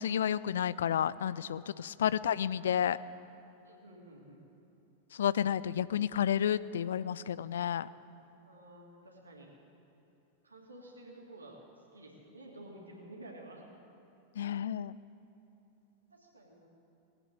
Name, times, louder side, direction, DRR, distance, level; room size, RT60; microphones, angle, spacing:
voice 1, 0.0-3.0 5.1-7.9 14.4-15.0, left 9 dB, 65° left, 18 dB, 0.3 m, -31 dB
voice 2, 3.6-4.4 8.4-9.5 10.4-11.6 11.9-13.6 16.1-16.7, right 1 dB, 80° right, -2 dB, 2.9 m, -51 dB
19.5 x 9.1 x 8.2 m, 2.9 s
figure-of-eight pair, 90°, 0 cm